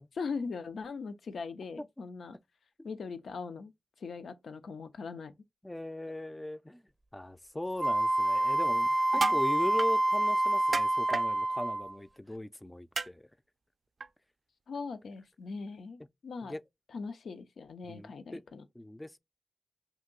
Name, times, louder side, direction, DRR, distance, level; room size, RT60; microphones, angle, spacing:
voice 1, 0.1-2.4 2.8-3.7 4.0-5.3 9.1-9.4 14.7-16.5 16.9-18.7, left 4 dB, 85° left, 0.4 m, -40 dB
voice 2, 5.6-6.8 7.1-13.2 16.4-16.6 17.9-18.4 18.7-19.2, left 1 dB, 15° left, 0.4 m, -39 dB
Wind instrument woodwind instrument, 7.8-11.9, right 1 dB, 20° right, 0.6 m, -27 dB
sound 1, 9.0-9.4 9.8-9.9 10.7-11.3 13.0-13.1 14.0-14.1, right 4 dB, 65° right, 0.3 m, -32 dB
2.8 x 2.6 x 3.6 m
cardioid pair, 40°, 0 cm